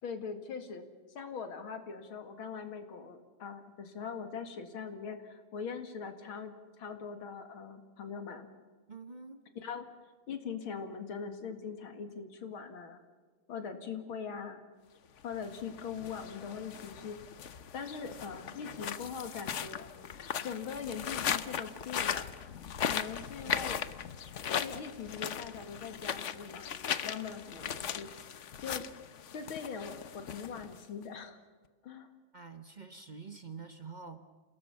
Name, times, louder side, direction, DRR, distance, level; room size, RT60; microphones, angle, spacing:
voice 1, 0.0-6.5 6.8-8.5 9.6-9.9 10.3-13.0 13.5-14.6 15.2-17.2 17.7-19.8 20.4-22.3 22.9-23.8 24.6-26.7 27.0-28.1 28.6-28.8 29.3-31.4 31.8-32.1, left 6 dB, 75° left, 8 dB, 2.8 m, -41 dB
voice 2, 8.9-9.4 23.4-23.5 32.3-34.2, right 5 dB, 30° right, 9 dB, 0.9 m, -46 dB
sound 1, 15.3-31.0, left 8 dB, 55° left, 0.8 m, -38 dB
28.5 x 18.0 x 7.0 m, 1.4 s
omnidirectional pair, 2.3 m